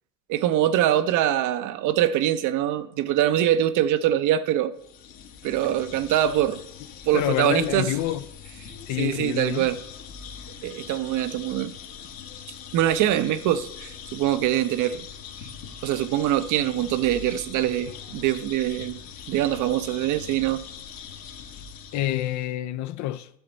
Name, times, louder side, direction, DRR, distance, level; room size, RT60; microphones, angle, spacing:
voice 1, 0.3-4.7 5.4-6.6 7.1-7.9 9.0-9.8 10.6-11.7 12.7-15.1 15.8-19.0 19.3-20.6, right 12 dB, 50° right, 0.7 m, -23 dB
sound 1, 4.8-22.5, left 7 dB, 60° left, 1.4 m, -42 dB
voice 2, 7.1-8.2 8.9-9.7 21.9-23.3, left 13 dB, 45° left, 0.5 m, -27 dB
10.5 x 6.8 x 4.0 m
hypercardioid pair, 85°, 41 cm